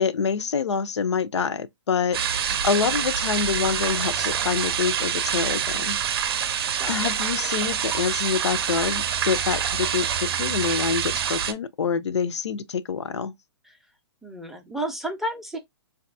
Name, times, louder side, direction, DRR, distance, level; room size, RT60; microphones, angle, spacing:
voice 1, 0.0-6.0 6.9-13.3, left 6 dB, 90° left, 0.4 m, -26 dB
sound 1, 2.1-11.5, right 8 dB, 60° right, 0.5 m, -26 dB
voice 2, 14.2-15.6, right 1 dB, ahead, 0.4 m, -31 dB
3.9 x 2.3 x 2.4 m
hypercardioid pair, 135°, 14 cm